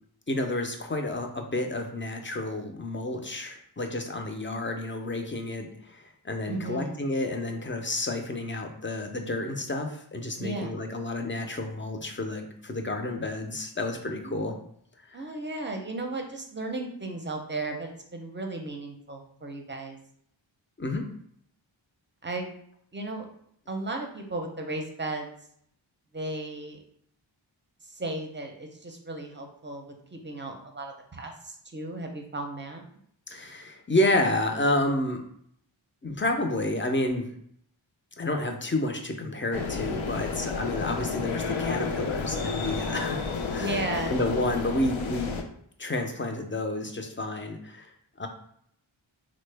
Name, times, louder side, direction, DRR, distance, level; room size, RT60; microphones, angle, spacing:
voice 1, 0.3-14.5 15.1-15.2 20.8-21.0 33.3-35.2 36.0-37.3 38.2-43.8 44.1-45.4 45.8-47.9 48.2-48.3, left 1 dB, 25° left, 4 dB, 0.5 m, -30 dB
voice 2, 6.5-7.0 10.4-10.8 14.1-14.6 15.1-20.0 22.2-22.5 22.9-23.3 23.7-25.3 26.1-26.8 27.8-32.8 43.6-44.2, right 2 dB, 25° right, 3 dB, 0.6 m, -35 dB
sound 1, 39.5-45.4, left 4 dB, 75° left, 0.5 m, -31 dB
3.7 x 2.1 x 3.3 m, 0.67 s
wide cardioid pair, 50°, 48 cm